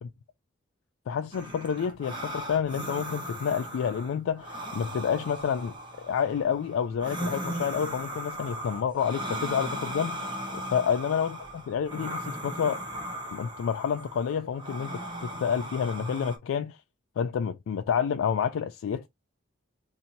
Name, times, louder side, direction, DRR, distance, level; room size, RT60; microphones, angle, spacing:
voice 1, 1.1-12.8 13.3-16.8 17.2-19.1, left 7 dB, 85° left, 0.3 m, -29 dB
sound 1, 1.3-16.4, equal, 20° right, 0.8 m, -37 dB
4.3 x 2.7 x 2.7 m
head